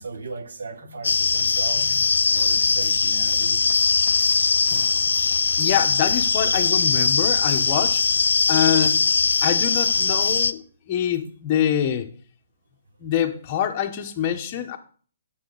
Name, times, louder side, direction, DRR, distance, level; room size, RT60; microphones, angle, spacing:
voice 1, 0.0-1.9 2.3-3.6, right 4 dB, 80° right, 8 dB, 1.2 m, -36 dB
sound 1, 1.0-10.5, left 5 dB, 90° left, 0.4 m, -21 dB
Drum, 4.7-7.4, right 2 dB, ahead, 1.3 m, -48 dB
voice 2, 5.6-8.0 8.5-9.0 9.4-10.6 10.9-12.1 13.0-14.8, left 9 dB, 25° left, 4 dB, 0.9 m, -25 dB
8.1 x 6.3 x 3.9 m, 0.43 s
hypercardioid pair, 160°, 0 cm